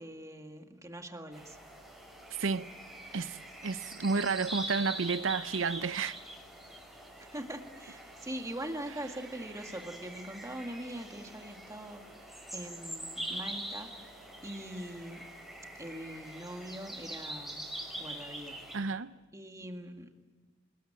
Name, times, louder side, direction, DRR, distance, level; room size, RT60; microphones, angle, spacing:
voice 1, 0.0-1.6 7.2-12.0 12.5-13.9 14.4-15.3 15.8-17.7 18.0-18.6 19.3-20.1, right 1 dB, 15° right, 2.0 m, -42 dB
sound 1, 1.3-18.8, right 1 dB, ahead, 5.9 m, -44 dB
voice 2, 2.3-2.7 3.1-3.4 3.6-6.2 18.7-19.1, right 4 dB, 85° right, 0.7 m, -31 dB
28.0 x 20.0 x 8.9 m
head